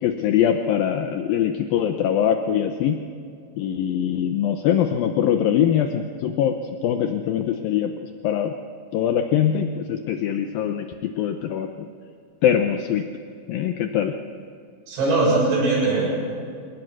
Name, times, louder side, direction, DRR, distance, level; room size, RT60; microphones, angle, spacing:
voice 1, 0.0-3.0 3.6-6.6 6.8-8.5 8.9-11.7 12.4-13.0 13.5-14.1, left 9 dB, 80° left, 6 dB, 2.1 m, -22 dB
voice 2, 14.9-16.4, right 2 dB, 90° right, -5 dB, 9.7 m, -21 dB
29.5 x 18.0 x 6.2 m, 2.4 s
omnidirectional pair, 5.3 m